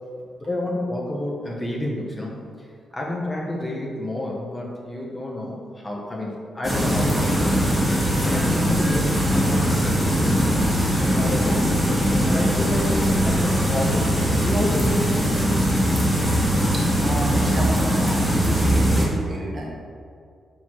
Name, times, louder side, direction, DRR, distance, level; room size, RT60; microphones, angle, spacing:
voice 1, 0.4-2.4 2.9-7.5 8.2-11.8 12.3-12.9 13.3-15.6, left 1 dB, 20° left, -3 dB, 0.9 m, -30 dB
sound 1, 6.6-19.1, equal, 5° right, 1.5 m, -21 dB
voice 2, 16.7-19.8, equal, 45° right, -3 dB, 1.5 m, -31 dB
4.6 x 4.5 x 5.9 m, 2.3 s
wide cardioid pair, 135°, 0 cm